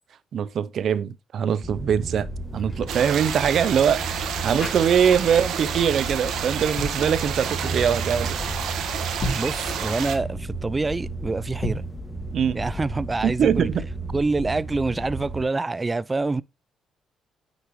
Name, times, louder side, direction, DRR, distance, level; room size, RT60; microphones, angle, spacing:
voice 1, 0.3-2.3 2.5-8.4 12.3-12.6 13.2-13.9, right 8 dB, 60° right, 0.7 m, -22 dB
sound 1, 1.6-15.4, right 2 dB, 5° left, 2.0 m, -33 dB
sound 2, 2.4-5.4 5.6-5.9 6.5-7.1 9.1-9.6 11.5-12.0, left 1 dB, 40° left, 3.9 m, -35 dB
sound 3, 2.9-10.2, right 8 dB, 80° right, 1.5 m, -30 dB
voice 2, 9.4-11.8 12.5-13.7 14.1-16.4, right 3 dB, 20° right, 0.4 m, -26 dB
9.7 x 6.5 x 3.1 m
cardioid pair, 90°, 0 cm